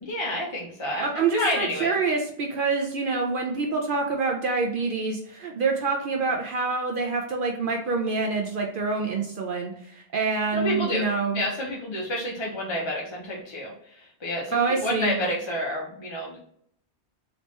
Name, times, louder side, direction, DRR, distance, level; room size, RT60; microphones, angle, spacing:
voice 1, 0.0-1.9 10.5-11.1 11.3-16.4, left 1 dB, 35° left, -3 dB, 0.5 m, -29 dB
voice 2, 1.0-11.4 14.5-15.1, right 4 dB, 60° right, 1 dB, 0.6 m, -26 dB
3.2 x 2.9 x 3.0 m, 0.67 s
omnidirectional pair, 1.2 m